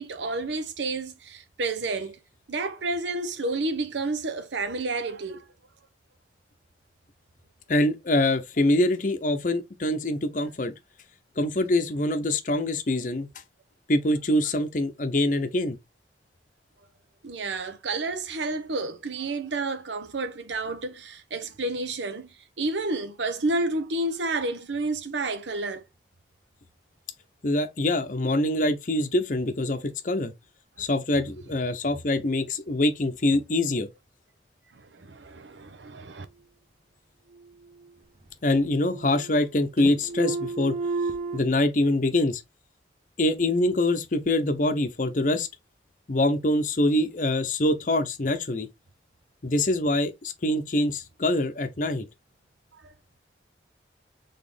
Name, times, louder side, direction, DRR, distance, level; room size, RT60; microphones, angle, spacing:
voice 1, 0.0-2.2 2.5-5.5 17.2-22.3 22.6-25.8 34.7-36.3 52.7-52.9, right 2 dB, 85° right, 0.8 m, -30 dB
voice 2, 7.7-10.7 11.4-13.3 13.9-15.8 27.4-30.3 30.8-33.9 38.4-40.7 41.3-42.4 43.2-45.5 46.1-48.7 49.4-52.0, left 1 dB, 45° left, 0.7 m, -24 dB
sound 1, 37.3-38.3 38.6-39.5 39.8-41.4, right 3 dB, 30° right, 0.9 m, -33 dB
4.2 x 3.6 x 3.4 m
head